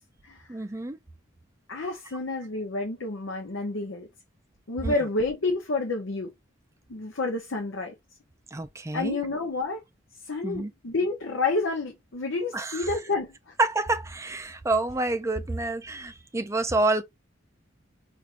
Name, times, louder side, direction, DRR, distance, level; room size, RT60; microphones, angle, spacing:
voice 1, 0.5-1.0 4.8-5.1 8.5-9.3 10.4-10.7 12.5-13.0 13.6-17.0, right 2 dB, 15° right, 0.4 m, -28 dB
voice 2, 1.7-4.1 4.7-6.3 6.9-7.9 8.9-9.8 10.2-13.5, left 3 dB, 65° left, 0.7 m, -29 dB
4.5 x 2.5 x 2.5 m
head